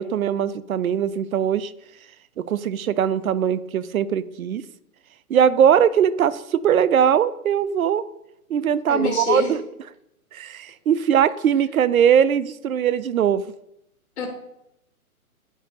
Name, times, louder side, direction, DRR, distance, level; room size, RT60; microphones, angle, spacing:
voice 1, 0.0-1.7 2.4-4.6 5.3-8.0 8.5-9.6 10.3-13.4, right 8 dB, 70° right, 17 dB, 0.5 m, -20 dB
voice 2, 8.9-9.6 14.2-14.3, left 4 dB, 50° left, 0 dB, 1.5 m, -25 dB
9.8 x 4.7 x 2.5 m, 0.81 s
figure-of-eight pair, 135°, 44 cm